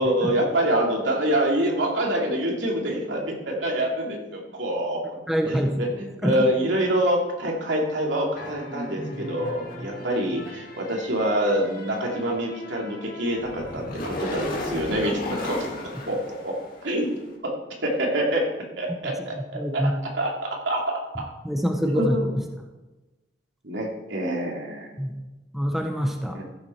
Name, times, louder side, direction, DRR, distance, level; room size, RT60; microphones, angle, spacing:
voice 1, 0.0-5.2 5.4-15.6 16.1-16.5 16.8-17.1 17.4-17.5 17.8-18.5 18.8-19.9 20.2-21.3 21.8-22.3 23.6-24.9 26.3-26.4, right 1 dB, 80° right, -1 dB, 2.8 m, -26 dB
voice 2, 5.3-5.8 6.2-6.3 19.0-19.9 21.4-22.1 25.0-25.2 25.5-26.4, equal, ahead, 2 dB, 0.9 m, -25 dB
sound 1, 8.4-17.1, left 1 dB, 50° left, 2.2 m, -36 dB
15.0 x 7.1 x 4.6 m, 1.1 s
head